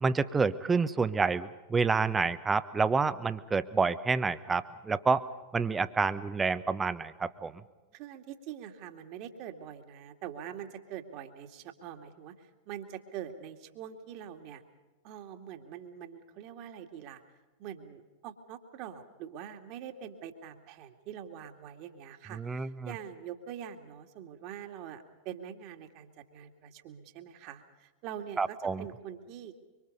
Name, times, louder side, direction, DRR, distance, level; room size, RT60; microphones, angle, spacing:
voice 1, 0.0-5.2 5.5-7.5 22.3-22.9 28.4-28.8, right 4 dB, 15° right, 13 dB, 1.1 m, -28 dB
voice 2, 7.9-14.6 15.0-17.2 17.6-29.5, right 9 dB, 45° right, 6 dB, 2.3 m, -44 dB
25.0 x 25.0 x 5.5 m, 1.2 s
figure-of-eight pair, 90°, 0 cm